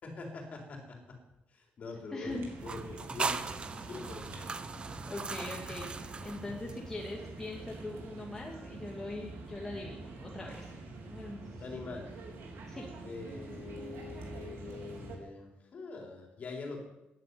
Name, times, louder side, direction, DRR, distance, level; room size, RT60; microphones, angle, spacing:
voice 1, 0.0-1.2 1.5-3.4 3.8-4.6 11.6-12.1 13.0-16.8, left 3 dB, 40° left, 1 dB, 4.1 m, -44 dB
voice 2, 2.1-2.5 5.1-10.7 11.1-11.6 12.7-12.9, left 2 dB, 15° left, -2 dB, 2.1 m, -41 dB
sound 1, 2.2-15.2, right 2 dB, 80° right, 4.2 m, -46 dB
sound 2, 2.6-7.2, right 4 dB, 25° right, 0.8 m, -39 dB
14.0 x 10.5 x 9.7 m, 0.93 s
wide cardioid pair, 180°, 4 cm